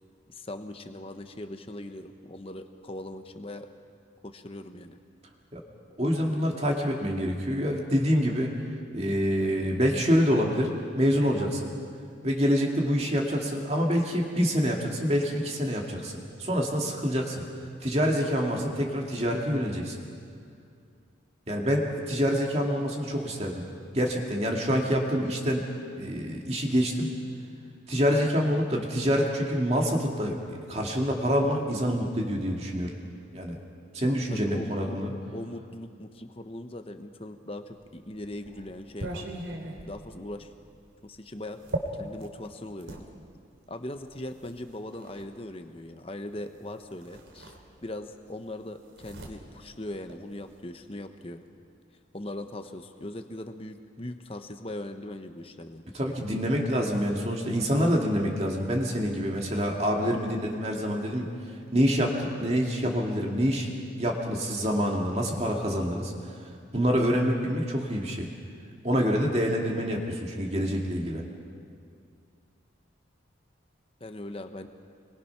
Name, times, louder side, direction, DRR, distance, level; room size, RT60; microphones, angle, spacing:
voice 1, 0.3-3.7 4.2-5.0 34.0-35.0 35.3-39.3 39.8-40.5 41.0-41.6 41.9-43.1 43.7-47.5 47.8-51.4 52.1-55.8 74.0-74.7, left 1 dB, 30° left, 7 dB, 1.1 m, -40 dB
voice 2, 6.0-8.6 8.9-11.7 12.2-16.1 16.4-17.4 17.8-20.0 21.5-23.6 23.9-25.7 26.0-27.1 27.9-32.9 33.3-33.6 33.9-35.1 55.9-61.3 61.7-63.7 64.0-66.3 66.7-68.3 68.8-71.2, equal, 35° right, 0 dB, 2.3 m, -26 dB
sound 1, 37.7-43.1 44.0-45.3 46.5-46.7 47.0-48.1 48.4-50.6, right 1 dB, 85° right, 3.3 m, -40 dB
27.0 x 23.0 x 5.9 m, 2.3 s
head